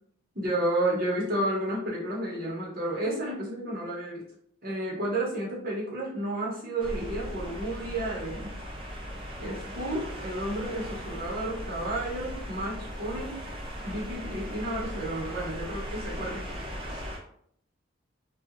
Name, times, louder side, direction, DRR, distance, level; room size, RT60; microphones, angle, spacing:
voice 1, 0.3-4.3 4.6-8.5 9.4-13.3 13.8-16.4 16.9-17.0, right 1 dB, 45° right, -5 dB, 1.0 m, -31 dB
sound 1, 6.8-17.2, equal, 25° right, 0.4 m, -38 dB
2.8 x 2.3 x 2.4 m, 0.67 s
head